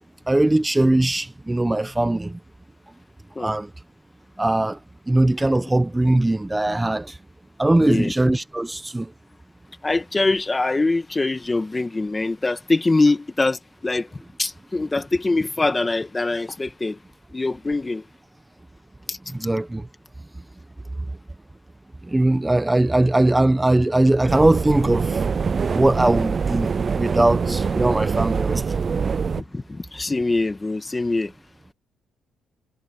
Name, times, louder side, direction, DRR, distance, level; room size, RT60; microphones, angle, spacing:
voice 1, 0.3-2.4 3.4-3.7 4.4-4.8 5.1-7.1 7.6-9.1 19.3-19.8 22.1-25.2 25.7-26.7 27.0-28.6, right 1 dB, 10° right, 1.3 m, -20 dB
voice 2, 7.8-8.1 9.8-17.0 17.3-18.0 19.1-19.2 29.4-31.3, left 3 dB, 20° left, 2.2 m, -23 dB
sound 1, 24.3-29.4, right 5 dB, 40° right, 0.4 m, -24 dB
cardioid pair, 90°, 0 cm